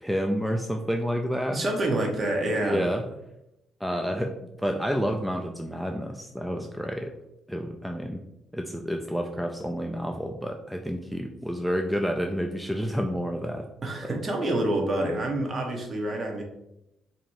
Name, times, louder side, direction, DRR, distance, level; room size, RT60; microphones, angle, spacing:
voice 1, 0.0-1.6 2.6-3.0 3.8-7.1 7.5-8.2 8.5-13.7, equal, ahead, 3 dB, 0.3 m, -29 dB
voice 2, 1.5-2.8 13.8-16.4, right 1 dB, 40° right, 2 dB, 0.9 m, -27 dB
4.3 x 2.8 x 2.6 m, 0.85 s
cardioid pair, 90°, 0 cm